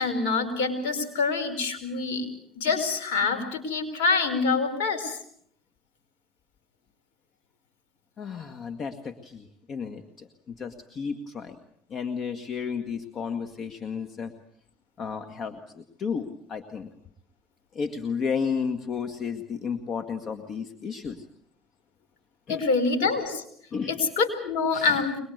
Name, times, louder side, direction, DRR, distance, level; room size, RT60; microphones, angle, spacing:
voice 1, 0.0-2.2 2.5-5.2 22.5-23.4 23.9-25.2, left 4 dB, 70° left, 7 dB, 4.9 m, -26 dB
voice 2, 8.2-11.6 11.9-14.3 15.0-16.9 17.7-21.2 22.5-22.7 23.7-24.0 24.7-25.0, left 6 dB, 45° left, 8 dB, 2.0 m, -33 dB
24.0 x 21.0 x 8.2 m, 0.67 s
hypercardioid pair, 75°, 0 cm